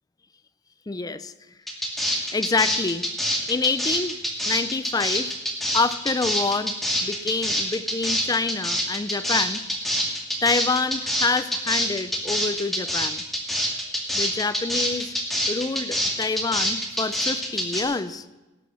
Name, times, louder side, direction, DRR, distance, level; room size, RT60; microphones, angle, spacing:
voice 1, 0.9-1.3 2.3-3.0 3.5-4.2 4.4-5.3 5.7-6.7 7.0-9.6 10.4-13.2 14.1-15.1 15.5-18.3, left 4 dB, 20° left, 13 dB, 0.4 m, -26 dB
sound 1, 1.7-17.8, equal, ahead, 2.2 m, -25 dB
18.5 x 8.0 x 6.2 m, 1.1 s
head